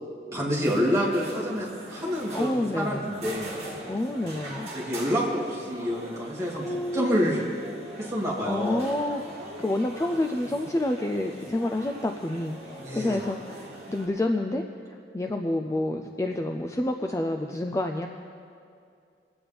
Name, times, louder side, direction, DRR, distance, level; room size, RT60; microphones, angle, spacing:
voice 1, 0.3-3.6 4.7-7.4 8.0-8.9 12.8-13.2, equal, 15° right, -5 dB, 2.2 m, -28 dB
sound 1, 0.6-14.1, right 1 dB, 35° right, 2.1 m, -42 dB
voice 2, 2.3-3.1 3.8-4.7 6.6-7.2 8.5-14.6 15.1-18.1, left 1 dB, 15° left, 4 dB, 0.3 m, -28 dB
22.5 x 8.8 x 3.4 m, 2.4 s
head